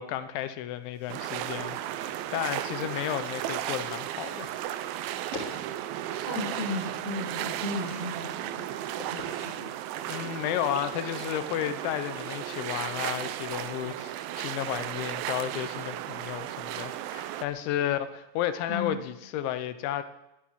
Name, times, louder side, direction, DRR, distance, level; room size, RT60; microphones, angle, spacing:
voice 1, 0.0-4.5 10.1-20.0, left 11 dB, 85° left, 11 dB, 3.3 m, -32 dB
sound 1, 0.9-8.3 8.6-9.4, left 1 dB, 35° left, 3.3 m, -46 dB
sound 2, 1.1-17.5, right 12 dB, 85° right, 2.1 m, -35 dB
voice 2, 6.1-8.6 9.1-9.7 18.7-19.0, left 2 dB, 70° right, -3 dB, 8.2 m, -35 dB
21.0 x 9.0 x 7.5 m, 0.91 s
omnidirectional pair, 5.2 m